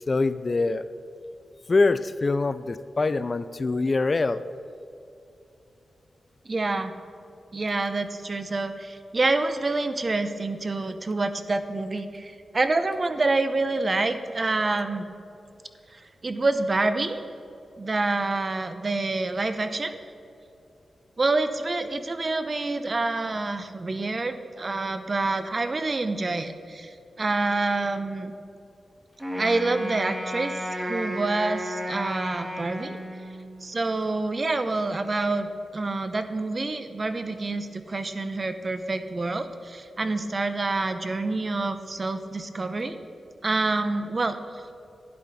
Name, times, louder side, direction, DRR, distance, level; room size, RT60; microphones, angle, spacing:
voice 1, 0.1-0.9 1.7-4.4, left 3 dB, 35° left, 13 dB, 0.3 m, -24 dB
voice 2, 6.5-7.0 7.5-15.1 15.9-17.2 17.8-20.0 21.2-28.3 29.4-33.0 33.6-43.0 43.4-44.6, right 3 dB, 35° right, 10 dB, 0.6 m, -27 dB
Wind instrument woodwind instrument, 29.2-33.6, equal, 10° right, 1.8 m, -33 dB
12.0 x 10.5 x 4.1 m, 2.6 s
wide cardioid pair, 95°, 0 cm